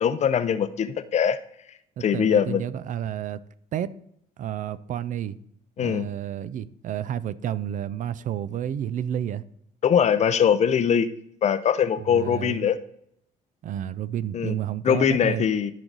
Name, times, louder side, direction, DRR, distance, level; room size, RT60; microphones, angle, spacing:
voice 1, 0.0-1.4 2.0-2.7 5.8-6.1 9.8-11.1 11.4-12.8 14.3-14.5 14.8-15.7, left 8 dB, 40° left, 0.6 m, -22 dB
voice 2, 2.0-3.4 3.7-3.9 4.4-5.4 5.8-9.4 12.1-12.6 13.6-15.5, right 10 dB, 50° right, 0.4 m, -30 dB
13.5 x 4.7 x 3.9 m
cardioid pair, 110°, 17 cm